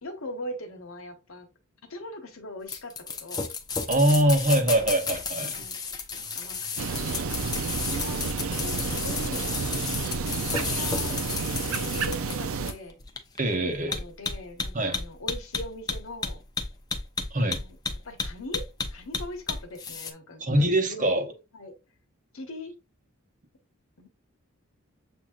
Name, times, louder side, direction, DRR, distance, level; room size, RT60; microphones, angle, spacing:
voice 1, 0.0-1.5 1.8-3.5 4.5-4.9 5.4-5.8 6.1-7.4 7.9-9.5 10.0-13.0 13.6-16.4 17.4-17.8 18.0-21.3 21.5-21.7 22.3-22.7 24.0-24.1, left 1 dB, 70° left, 1.2 m, -41 dB
sound 1, 2.7-20.1, left 4 dB, 20° left, 0.6 m, -32 dB
voice 2, 3.9-5.5 13.4-14.0 14.7-14.9 17.3-17.6 20.4-21.2, right 1 dB, 35° right, 1.0 m, -23 dB
sound 2, 6.8-12.7, right 5 dB, 70° right, 0.5 m, -30 dB
7.3 x 2.7 x 2.4 m
head